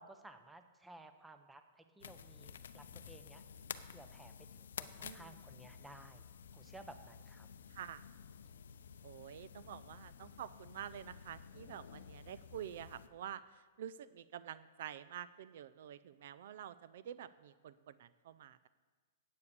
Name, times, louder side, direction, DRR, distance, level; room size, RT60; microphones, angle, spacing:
voice 1, 0.0-3.4 3.9-6.2 6.5-7.5, right 2 dB, 5° right, 8 dB, 0.7 m, -56 dB
sound 1, 2.0-13.1, left 7 dB, 90° left, 0.6 m, -52 dB
voice 2, 5.0-5.3 7.7-8.0 9.0-18.7, right 10 dB, 60° right, 16 dB, 0.4 m, -48 dB
9.6 x 8.5 x 6.8 m, 1.4 s
hypercardioid pair, 155°, 0 cm